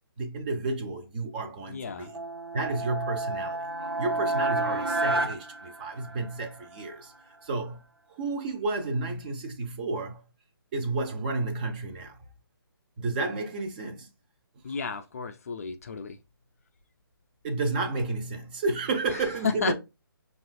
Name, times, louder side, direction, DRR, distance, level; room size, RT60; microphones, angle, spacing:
voice 1, 0.2-2.2 2.5-3.7 4.0-7.1 7.4-7.8 8.1-10.2 10.7-12.2 13.0-14.1 17.4-19.7, right 3 dB, 20° right, 0.5 m, -31 dB
voice 2, 1.7-2.1 14.6-16.2 19.4-19.7, left 6 dB, 40° left, 0.3 m, -32 dB
sound 1, 2.1-6.4, right 2 dB, 75° right, 0.8 m, -30 dB
5.4 x 2.3 x 2.4 m
figure-of-eight pair, 145°, 12 cm